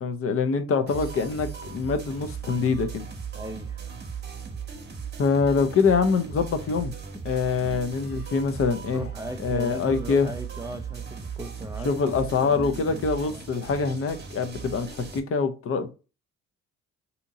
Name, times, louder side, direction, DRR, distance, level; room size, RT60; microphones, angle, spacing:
voice 1, 0.0-3.1 5.2-6.9 7.2-9.1 9.4-10.3 11.8-15.9, left 5 dB, 45° left, 0.6 m, -25 dB
sound 1, 0.9-15.2, right 6 dB, 35° right, 0.9 m, -38 dB
voice 2, 3.3-3.9 7.6-7.8 8.9-12.2 12.4-13.4, right 1 dB, 10° right, 0.4 m, -38 dB
2.8 x 2.6 x 3.7 m
cardioid pair, 90°, 30 cm